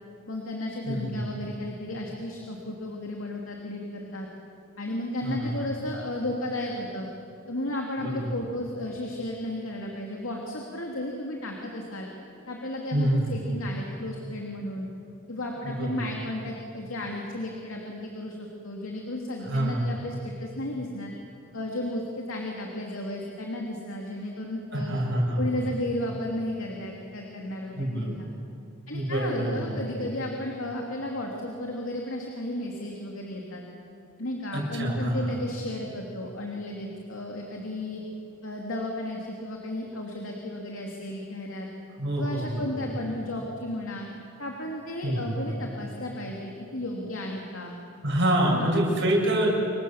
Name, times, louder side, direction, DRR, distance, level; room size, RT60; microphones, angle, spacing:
voice 1, 0.3-4.3 4.8-7.1 7.5-12.1 12.5-14.9 15.3-21.1 21.5-25.0 25.4-28.1 28.9-33.6 34.2-38.0 38.4-41.7 42.2-44.1 44.4-47.7 48.5-48.8, left 1 dB, 75° left, 0 dB, 2.9 m, -34 dB
voice 2, 0.9-1.2 5.2-5.5 8.0-8.3 12.9-13.4 15.6-16.1 19.4-19.8 24.7-25.4 27.7-28.1 28.9-29.8 34.5-35.2 42.0-42.6 45.0-45.3 48.0-49.5, right 1 dB, 60° right, -2 dB, 7.1 m, -26 dB
27.5 x 23.5 x 7.3 m, 2.7 s
head